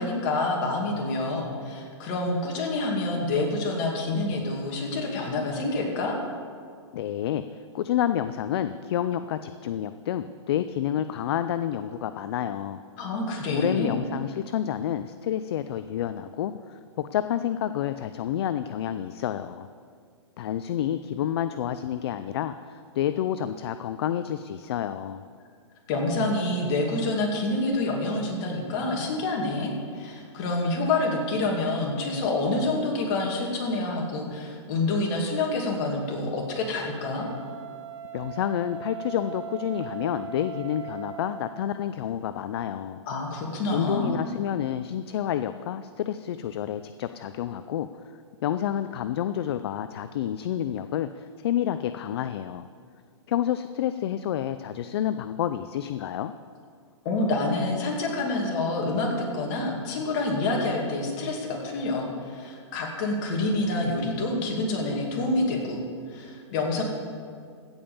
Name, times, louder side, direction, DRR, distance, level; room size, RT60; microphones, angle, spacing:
voice 1, 0.0-6.2 13.0-14.0 25.9-37.3 43.1-44.1 57.0-65.8 66.1-66.8, left 2 dB, 40° left, 0 dB, 2.5 m, -27 dB
voice 2, 6.9-12.8 13.5-19.7 20.4-25.2 38.1-43.0 43.7-47.9 48.4-52.6 53.3-56.3, left 10 dB, 55° left, 11 dB, 0.4 m, -29 dB
Wind instrument woodwind instrument, 37.1-41.8, right 10 dB, 85° right, 1.0 m, -39 dB
16.0 x 5.4 x 7.1 m, 2.1 s
hypercardioid pair, 145°, 16 cm